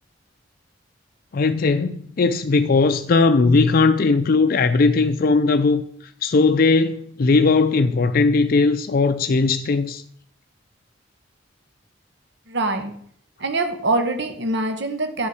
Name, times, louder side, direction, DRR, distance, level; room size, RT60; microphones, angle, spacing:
voice 1, 1.3-5.8 6.2-10.0, left 3 dB, 50° left, 0.4 m, -18 dB
voice 2, 12.5-12.9 13.4-15.3, right 2 dB, 65° right, 1.3 m, -24 dB
10.5 x 5.5 x 4.8 m
head